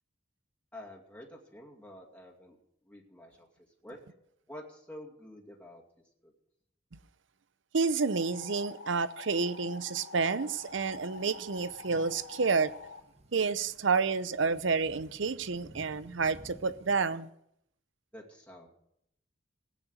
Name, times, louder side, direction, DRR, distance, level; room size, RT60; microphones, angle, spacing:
voice 1, 0.7-2.6 2.9-3.5 3.8-4.0 4.5-5.8 6.2-6.3 18.1-18.7, left 1 dB, 5° left, 2.3 m, -48 dB
voice 2, 7.7-12.7 13.3-17.3, right 4 dB, 70° right, 0.7 m, -29 dB
sound 1, 8.0-13.0, left 5 dB, 75° left, 1.2 m, -47 dB
sound 2, 10.7-17.0, right 1 dB, 35° right, 1.2 m, -56 dB
17.5 x 9.0 x 6.4 m
head